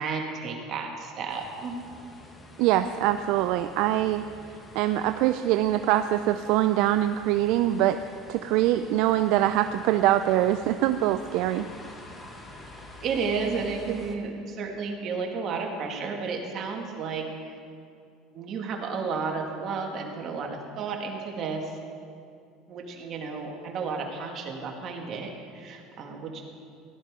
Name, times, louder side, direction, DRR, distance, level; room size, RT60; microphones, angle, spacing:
voice 1, 0.0-1.8 13.0-17.6 18.3-21.8 22.7-26.4, right 5 dB, 50° right, 1 dB, 2.0 m, -32 dB
sound 1, 1.3-14.2, left 2 dB, 20° left, 1.6 m, -47 dB
voice 2, 2.6-4.2 4.7-8.0 8.3-11.7, right 13 dB, 70° right, 9 dB, 0.4 m, -23 dB
16.0 x 11.5 x 3.7 m, 2.4 s
supercardioid pair, 110°, 0 cm